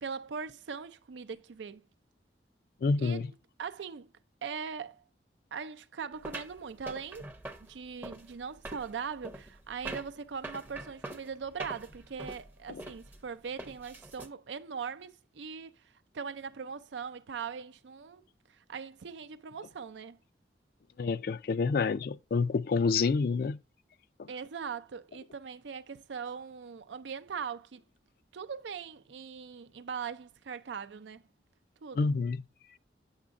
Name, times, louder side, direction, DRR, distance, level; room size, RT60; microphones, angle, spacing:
voice 1, 0.0-1.8 3.0-3.3 3.6-4.1 4.4-5.0 5.5-7.3 7.7-15.8 16.1-18.2 18.5-20.2 24.3-27.8 28.3-31.2 31.8-32.1, right 6 dB, 85° right, 0.5 m, -40 dB
voice 2, 2.8-3.3 12.7-12.8 21.0-23.6 24.2-24.3 32.0-32.4, left 4 dB, 55° left, 0.3 m, -28 dB
sound 1, 6.2-14.3, right 2 dB, 10° right, 0.6 m, -44 dB
7.2 x 6.0 x 2.4 m
head